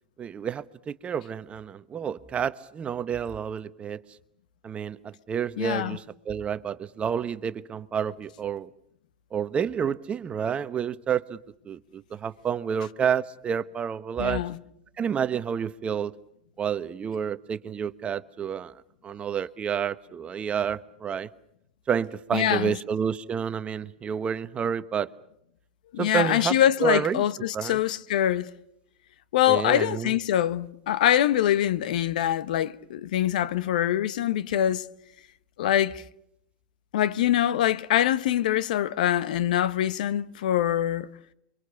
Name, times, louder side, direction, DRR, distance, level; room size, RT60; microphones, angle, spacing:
voice 1, 0.2-4.2 4.6-8.7 9.3-14.4 15.0-16.2 16.6-21.3 21.9-25.1 26.0-27.2 27.5-27.8 29.5-30.2, right 7 dB, 25° right, 1.0 m, -29 dB
voice 2, 5.6-6.0 14.2-14.6 22.3-22.7 25.9-28.5 29.3-34.9 35.6-36.0 36.9-41.1, left 11 dB, 70° left, 1.1 m, -24 dB
28.0 x 24.0 x 6.9 m
hypercardioid pair, 100°, 5 cm